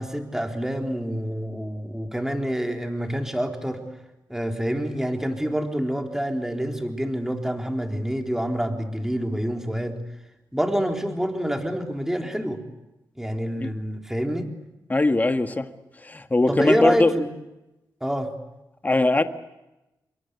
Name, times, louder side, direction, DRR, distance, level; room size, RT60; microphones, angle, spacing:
voice 1, 0.0-3.8 4.3-10.0 10.5-12.6 13.2-14.5 16.5-17.3 18.0-18.3, equal, 5° right, 4.0 m, -27 dB
voice 2, 14.9-15.7 16.0-17.1 18.8-19.2, left 2 dB, 25° left, 1.6 m, -20 dB
27.0 x 23.0 x 8.2 m
cardioid pair, 70°, 7 cm